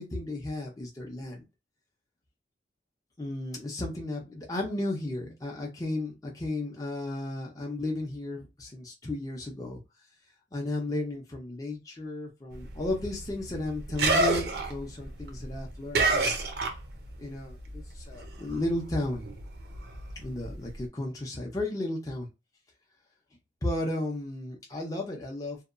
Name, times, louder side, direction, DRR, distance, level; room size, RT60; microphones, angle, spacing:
voice 1, 0.0-1.4 3.2-9.8 10.5-16.3 17.2-19.3 20.2-22.3 23.6-25.6, left 1 dB, 20° left, -1 dB, 0.6 m, -34 dB
sound 1, 12.5-17.2 17.5-20.8, right 3 dB, 60° right, 0.6 m, -30 dB
2.8 x 2.2 x 2.4 m, 0.25 s
head